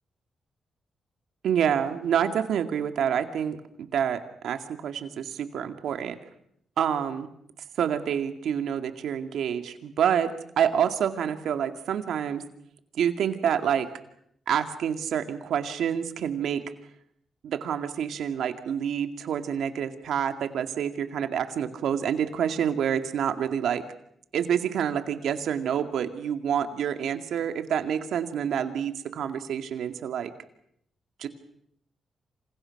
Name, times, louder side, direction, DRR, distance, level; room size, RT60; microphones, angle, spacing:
voice 1, 1.4-6.2 6.8-7.3 7.8-10.3 10.6-12.4 13.0-13.9 14.5-16.6 17.4-23.8 24.3-30.3 31.2-31.3, right 8 dB, 80° right, 8 dB, 2.2 m, -27 dB
27.5 x 27.5 x 6.0 m, 0.72 s
cardioid pair, 75°, 0 cm